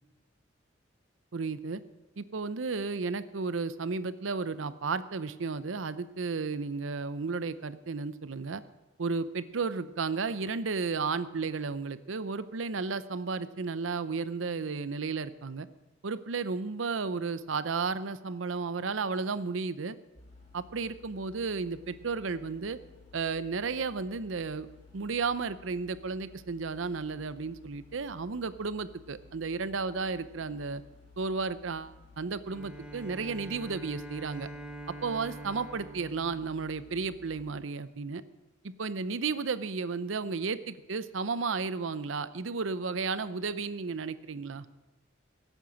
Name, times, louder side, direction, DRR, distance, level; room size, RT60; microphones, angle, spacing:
voice 1, 1.3-1.8 2.2-8.6 9.0-15.7 16.0-20.0 20.5-22.8 23.1-24.7 24.9-30.8 31.2-34.5 35.0-38.2 38.8-44.7, right 4 dB, 80° right, 15 dB, 0.7 m, -33 dB
sound 1, 20.1-37.4, left 4 dB, 40° left, 3.6 m, -56 dB
Bowed string instrument, 32.4-37.3, right 2 dB, 5° right, 1.1 m, -45 dB
16.5 x 9.1 x 6.3 m, 1.1 s
head